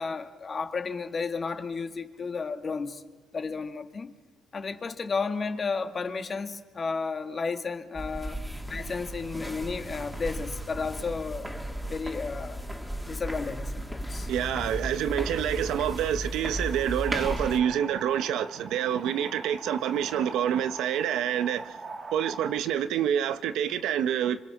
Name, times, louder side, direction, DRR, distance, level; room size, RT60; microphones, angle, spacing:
voice 1, 0.0-3.0 3.3-4.1 4.5-8.4 8.7-11.5 11.9-12.6 13.0-14.3, left 4 dB, 40° left, 1.9 m, -33 dB
sound 1, 7.9-17.6, equal, ahead, 2.7 m, -35 dB
voice 2, 14.2-21.8 22.1-24.4, right 10 dB, 85° right, 1.0 m, -27 dB
sound 2, 16.7-22.6, right 3 dB, 35° right, 2.5 m, -42 dB
26.5 x 26.0 x 6.0 m
cardioid pair, 90°, 0 cm